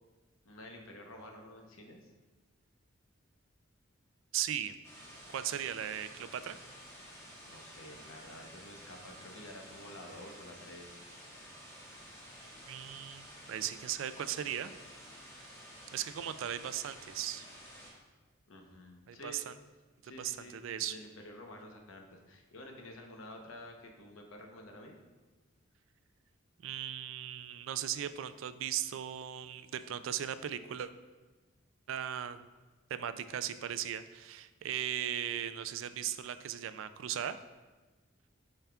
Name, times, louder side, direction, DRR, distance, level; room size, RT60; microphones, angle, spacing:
voice 1, 0.4-2.1 7.4-11.0 18.5-19.4 20.0-20.6 20.9-25.0, left 1 dB, 80° left, 2 dB, 0.9 m, -50 dB
voice 2, 4.3-4.7 5.3-6.6 12.7-14.7 15.9-17.5 19.1-19.5 20.2-21.0 26.6-30.9 31.9-32.4 32.9-37.4, right 10 dB, 70° right, 12 dB, 0.3 m, -37 dB
sound 1, 4.8-17.9, equal, 15° left, 1.2 m, -52 dB
8.9 x 5.6 x 2.3 m, 1.2 s
head